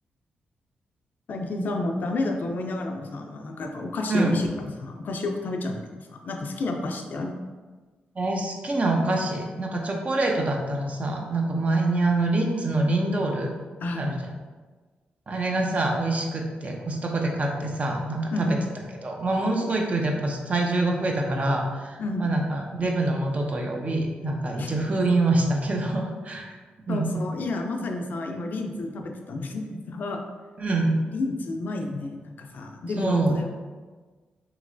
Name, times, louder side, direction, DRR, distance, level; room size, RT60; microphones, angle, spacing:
voice 1, 1.3-5.8 6.1-7.4 13.8-14.2 18.3-18.5 22.0-22.3 24.6-24.7 26.9-30.2 31.1-33.5, left 2 dB, 60° left, 3 dB, 0.4 m, -30 dB
voice 2, 8.2-13.5 14.0-14.2 15.3-18.6 19.0-26.5 26.9-27.2 30.6-30.9 33.0-33.4, right 2 dB, 40° right, 1 dB, 0.6 m, -25 dB
3.0 x 2.8 x 2.5 m, 1.4 s
cardioid pair, 60°, 3 cm